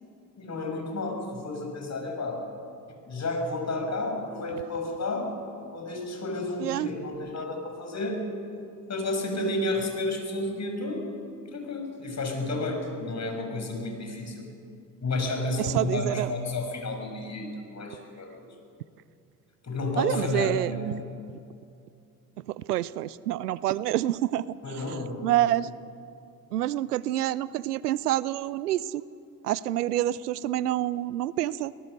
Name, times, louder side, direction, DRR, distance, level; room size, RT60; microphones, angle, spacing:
voice 1, 0.4-2.4 3.1-5.3 5.7-8.2 8.9-11.1 11.5-14.5 15.0-18.5 19.6-20.8 24.6-25.5, left 2 dB, 35° left, 3 dB, 6.2 m, -31 dB
voice 2, 15.6-16.3 20.0-20.7 22.5-24.5 24.9-25.7 26.5-29.0 29.4-31.7, right 14 dB, 90° right, 20 dB, 0.5 m, -27 dB
26.0 x 18.5 x 6.6 m, 2.5 s
hypercardioid pair, 55°, 45 cm